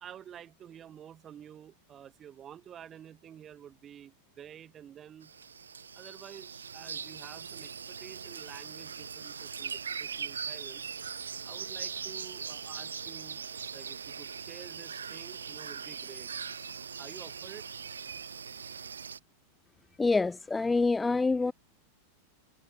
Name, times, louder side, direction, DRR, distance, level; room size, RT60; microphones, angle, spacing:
voice 1, 0.0-5.3 5.9-10.9 11.4-13.4 13.7-16.3 17.0-17.6, right 9 dB, 25° right, 1.6 m, -50 dB
sound 1, 5.2-19.2, right 6 dB, 70° right, 0.6 m, -41 dB
voice 2, 20.0-21.5, left 3 dB, 10° left, 0.4 m, -26 dB
figure-of-eight pair, 90°, 0 cm